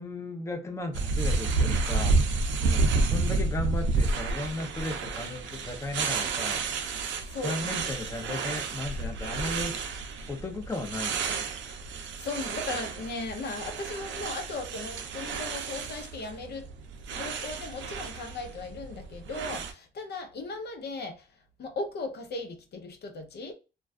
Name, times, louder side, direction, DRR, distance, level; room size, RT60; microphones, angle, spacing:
voice 1, 0.0-2.1 2.5-2.6 3.0-6.6 7.4-10.0 10.3-11.4, left 2 dB, 15° left, 0.6 m, -35 dB
sound 1, 0.9-19.7, right 3 dB, 70° right, 0.5 m, -30 dB
voice 2, 2.6-3.0 7.3-7.6 12.2-16.7 17.1-21.3 21.6-23.5, left 3 dB, 55° left, 0.6 m, -37 dB
2.4 x 2.2 x 2.4 m
cardioid pair, 90°, 20 cm